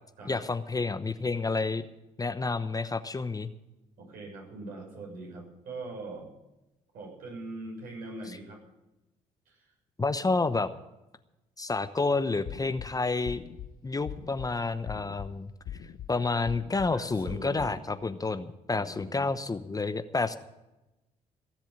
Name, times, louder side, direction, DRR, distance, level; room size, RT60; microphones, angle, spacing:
voice 1, 0.3-1.9 2.2-3.5 10.0-10.7 11.6-13.4 13.8-15.5 16.1-20.4, left 3 dB, 20° left, 11 dB, 0.9 m, -29 dB
voice 2, 4.0-6.3 6.9-8.6 9.5-9.7 16.9-17.8 18.7-19.3, right 2 dB, 65° right, -1 dB, 6.9 m, -42 dB
sound 1, 12.4-12.9 13.3-13.7 14.1-14.5 14.9-15.3 15.7-16.1 16.5-16.9 17.3-17.7, left 10 dB, 65° left, 0.9 m, -40 dB
17.0 x 7.4 x 8.8 m, 0.98 s
hypercardioid pair, 60°, 16 cm